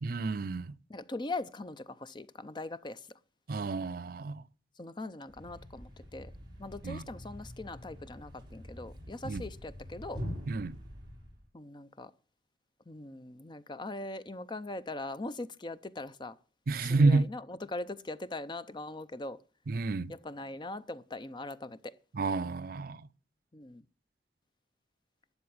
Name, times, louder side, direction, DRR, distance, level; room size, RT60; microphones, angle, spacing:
voice 1, 0.0-0.7 3.5-4.4 6.8-7.1 9.2-9.4 10.5-10.8 16.7-17.3 19.7-20.1 22.1-23.1, right 3 dB, 55° right, 0.5 m, -29 dB
voice 2, 0.9-3.1 4.8-6.3 6.6-10.2 11.5-12.1 12.9-16.4 16.9-19.4 20.1-22.0 23.5-23.8, left 2 dB, 25° left, 0.6 m, -41 dB
Thump thud, 5.3-11.5, equal, 25° right, 4.6 m, -45 dB
12.5 x 7.0 x 8.6 m
head